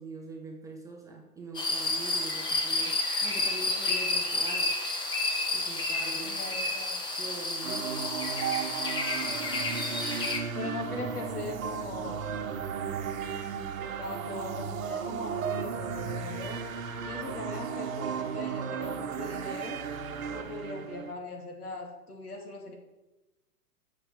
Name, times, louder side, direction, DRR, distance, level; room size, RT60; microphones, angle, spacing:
voice 1, 0.0-2.9 3.2-4.8 5.5-6.4 7.2-8.1, right 3 dB, 5° right, 0 dB, 0.6 m, -43 dB
sound 1, 1.5-10.4, left 2 dB, 10° left, 1.1 m, -30 dB
voice 2, 6.2-7.0 10.5-12.3 13.8-16.6 17.1-19.8 20.3-22.7, left 3 dB, 70° left, 1 dB, 2.8 m, -40 dB
sound 2, 7.6-21.1, right 7 dB, 60° right, 1.1 m, -35 dB
8.7 x 6.2 x 7.2 m, 1.0 s
figure-of-eight pair, 110°, 47 cm